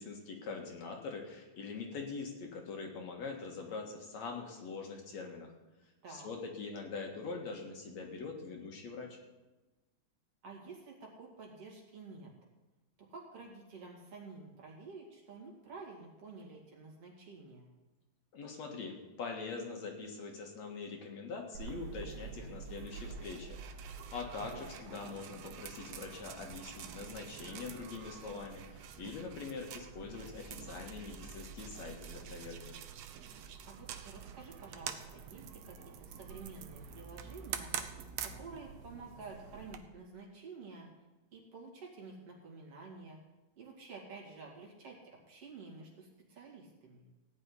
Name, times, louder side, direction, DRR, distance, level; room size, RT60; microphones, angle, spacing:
voice 1, 0.0-5.5 5.8-9.2 18.3-32.7, left 4 dB, 60° left, 2 dB, 2.7 m, -43 dB
voice 2, 6.0-6.3 10.4-12.3 13.1-17.7 24.5-25.2 33.7-37.7 38.2-40.9 41.3-43.2 43.6-47.1, right 4 dB, 50° right, -1 dB, 3.4 m, -50 dB
sound 1, 21.5-39.8, right 7 dB, 70° right, 1.7 m, -46 dB
16.5 x 5.6 x 9.6 m, 1.1 s
omnidirectional pair, 3.6 m